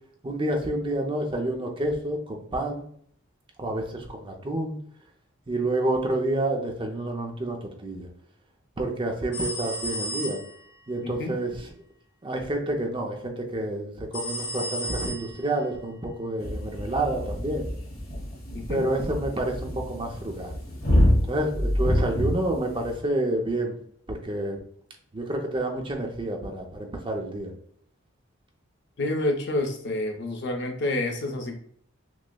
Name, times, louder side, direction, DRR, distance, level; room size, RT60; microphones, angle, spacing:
voice 1, 0.2-2.8 3.6-4.8 5.5-8.1 8.8-10.4 10.9-11.7 12.2-17.7 18.7-20.6 21.3-23.8 24.1-24.6 25.1-27.5, right 1 dB, 25° right, 2 dB, 0.4 m, -29 dB
sound 1, 9.3-10.8 14.1-15.6, equal, 25° left, 0.8 m, -33 dB
sound 2, 16.4-23.0, equal, 80° left, 1.4 m, -27 dB
voice 2, 29.0-31.5, left 2 dB, 50° left, 3 dB, 0.6 m, -28 dB
6.0 x 2.1 x 2.2 m, 0.64 s
head